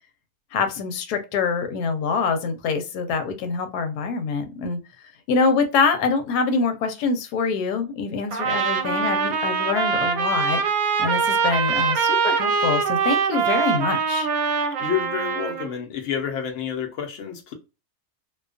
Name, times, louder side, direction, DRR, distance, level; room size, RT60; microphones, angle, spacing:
voice 1, 0.5-4.8 5.3-10.6 11.0-14.3, left 5 dB, 90° left, 1.1 m, -25 dB
Trumpet, 8.3-15.7, right 5 dB, 70° right, 1.0 m, -23 dB
voice 2, 14.8-17.5, left 8 dB, 60° left, 0.9 m, -29 dB
2.6 x 2.2 x 2.3 m
omnidirectional pair, 1.6 m